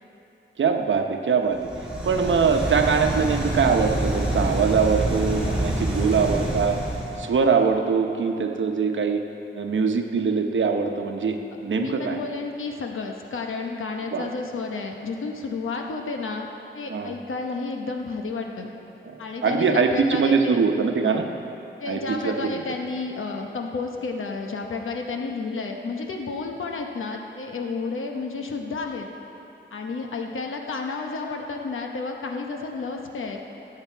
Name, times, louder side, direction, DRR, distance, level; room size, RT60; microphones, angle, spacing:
voice 1, 0.6-1.6 2.0-6.8 7.2-9.2 9.5-12.2 14.1-14.3 16.9-17.1 19.0-21.2 21.9-22.5, right 5 dB, 70° right, 4 dB, 0.9 m, -22 dB
sound 1, 1.5-7.3, right 1 dB, 5° right, 2.8 m, -27 dB
voice 2, 11.7-16.5 16.7-18.7 19.2-20.7 21.0-21.3 21.8-29.1 29.7-33.4, left 4 dB, 85° left, 2 dB, 1.0 m, -31 dB
17.5 x 8.1 x 4.6 m, 3.0 s
wide cardioid pair, 165°, 20 cm